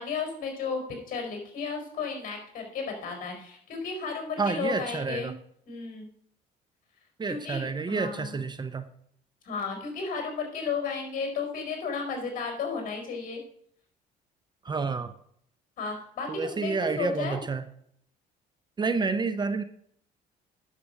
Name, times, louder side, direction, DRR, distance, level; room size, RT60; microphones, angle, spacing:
voice 1, 0.0-5.3 5.7-6.1 7.3-8.4 9.4-13.4 15.8-17.4, left 5 dB, 55° left, 3 dB, 4.5 m, -33 dB
voice 2, 4.4-5.3 7.2-8.9 14.6-15.1 16.3-17.7 18.8-19.6, right 4 dB, 25° right, 11 dB, 0.7 m, -29 dB
10.0 x 6.8 x 6.4 m, 0.67 s
cardioid pair, 110°, 17 cm